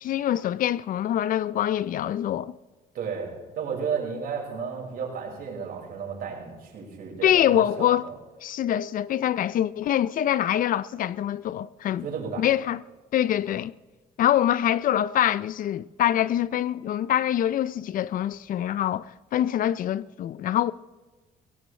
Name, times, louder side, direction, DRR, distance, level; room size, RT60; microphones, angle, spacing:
voice 1, 0.0-2.5 7.2-8.1 8.4-12.1 12.4-12.8 13.1-13.7 14.2-20.7, left 11 dB, 55° left, 0.5 m, -24 dB
voice 2, 2.9-8.1 12.0-12.4, right 6 dB, 60° right, 5.4 m, -33 dB
23.0 x 17.0 x 3.3 m
cardioid pair, 110°, 17 cm